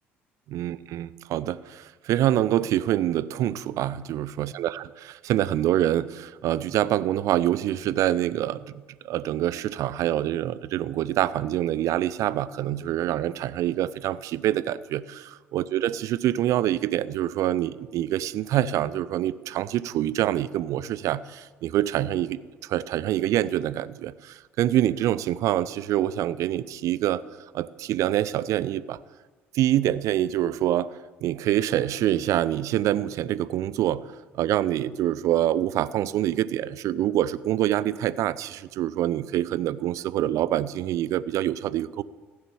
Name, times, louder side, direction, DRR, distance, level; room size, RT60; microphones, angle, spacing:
voice 1, 0.5-15.2 15.5-27.2 27.5-29.0 29.5-34.0 34.3-42.0, right 12 dB, 55° right, 19 dB, 0.5 m, -26 dB
15.0 x 9.7 x 7.0 m, 1.3 s
figure-of-eight pair, 55°, 7 cm